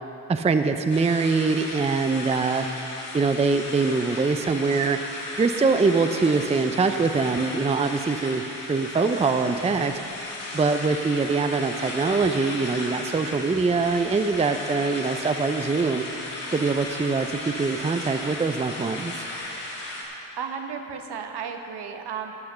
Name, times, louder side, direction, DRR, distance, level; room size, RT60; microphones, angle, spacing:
voice 1, 0.3-2.7 3.1-5.0 5.4-10.0 10.5-16.0 16.5-19.3, right 4 dB, 15° right, 7 dB, 0.5 m, -23 dB
sound 1, 0.9-20.0, left 2 dB, 75° left, 2.5 m, -35 dB
voice 2, 20.4-22.4, right 6 dB, 60° right, 5 dB, 1.2 m, -34 dB
13.5 x 5.8 x 6.4 m, 3.0 s
supercardioid pair, 55°, 44 cm